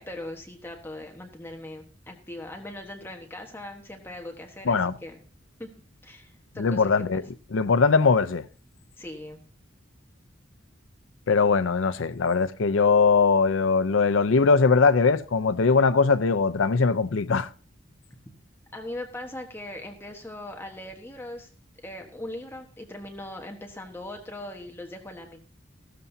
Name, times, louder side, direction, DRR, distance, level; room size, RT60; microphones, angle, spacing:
voice 1, 0.0-5.2 5.6-5.7 6.0-6.8 9.0-9.4 18.7-21.5 21.8-25.5, left 1 dB, 10° left, 1.2 m, -40 dB
voice 2, 6.6-7.2 7.5-8.4 11.3-17.5, left 4 dB, 80° left, 0.6 m, -21 dB
16.0 x 13.0 x 2.7 m
head